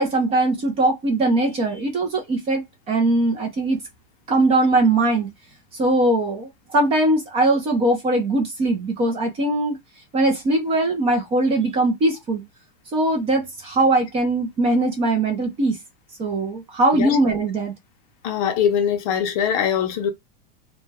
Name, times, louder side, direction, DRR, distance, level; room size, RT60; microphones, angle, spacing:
voice 1, 0.0-3.8 4.3-5.3 5.7-9.8 10.1-12.4 12.9-15.8 16.2-17.7, right 2 dB, 20° right, 0.5 m, -20 dB
voice 2, 18.2-20.1, left 8 dB, 35° left, 0.5 m, -22 dB
2.2 x 2.1 x 3.3 m
supercardioid pair, 155°, 30 cm